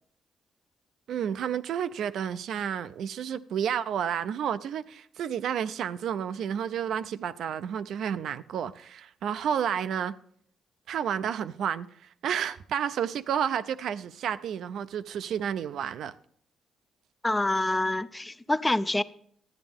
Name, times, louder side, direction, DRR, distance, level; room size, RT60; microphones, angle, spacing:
voice 1, 1.1-10.2 10.9-11.9 12.2-16.1, right 8 dB, 70° right, 0.4 m, -31 dB
voice 2, 17.2-19.0, left 2 dB, 15° left, 0.4 m, -26 dB
13.0 x 9.6 x 3.5 m
cardioid pair, 90°, 0 cm